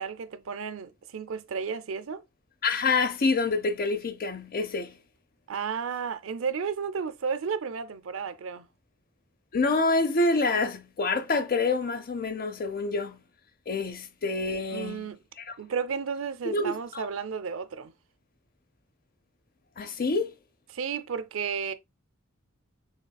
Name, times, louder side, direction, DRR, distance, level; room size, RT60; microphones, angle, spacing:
voice 1, 0.0-2.2 5.5-8.7 14.7-15.2 15.6-17.9 20.7-21.7, right 6 dB, 70° right, 0.5 m, -33 dB
voice 2, 2.6-4.9 9.5-13.2 13.7-15.1 15.4-15.6 16.4-17.1 19.8-20.3, left 3 dB, 45° left, 0.6 m, -27 dB
6.5 x 3.2 x 2.2 m
head